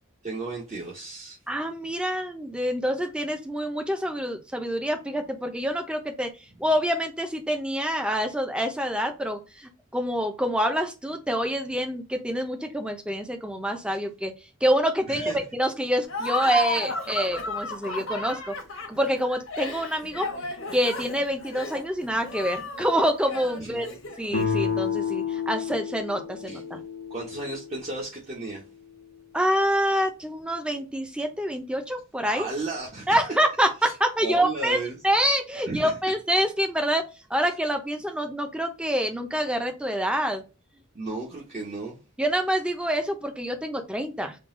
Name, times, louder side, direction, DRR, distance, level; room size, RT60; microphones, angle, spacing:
voice 1, 0.2-1.4 15.1-15.4 23.6-24.0 26.4-26.6 27.1-28.7 32.3-33.2 33.8-33.9 34.2-35.0 35.7-36.0 40.9-42.0, right 2 dB, 30° right, 0.9 m, -34 dB
voice 2, 1.5-6.3 6.6-14.3 14.6-18.6 18.9-20.3 20.7-23.9 24.2-26.8 29.3-32.5 33.1-37.0 37.3-40.4 42.2-44.4, equal, 5° right, 0.6 m, -26 dB
Laughter, 16.1-24.4, left 2 dB, 75° left, 0.9 m, -33 dB
sound 1, 24.3-27.9, left 6 dB, 50° left, 0.6 m, -30 dB
3.8 x 2.3 x 3.7 m
head